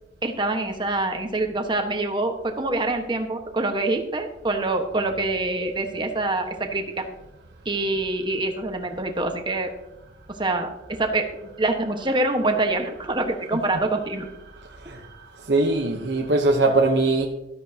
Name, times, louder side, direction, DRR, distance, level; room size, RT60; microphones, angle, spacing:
voice 1, 0.2-7.0 7.6-9.7 10.4-11.3 11.6-14.3, right 2 dB, 25° right, 4 dB, 1.3 m, -25 dB
voice 2, 15.4-17.3, right 2 dB, 70° right, 1 dB, 1.0 m, -21 dB
13.5 x 13.0 x 2.9 m, 0.94 s
head